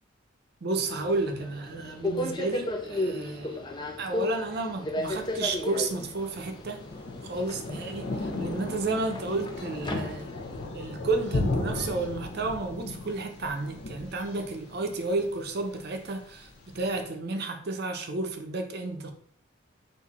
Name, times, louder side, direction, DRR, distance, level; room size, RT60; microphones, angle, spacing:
voice 1, 0.6-3.6 4.0-6.9 7.2-10.3 10.7-19.1, right 3 dB, 50° right, 0.6 m, -32 dB
Subway metro underground, 0.9-10.6, left 1 dB, 20° left, 0.4 m, -35 dB
Thunder, 5.0-17.0, left 2 dB, 60° left, 0.9 m, -36 dB
3.9 x 2.7 x 4.2 m
head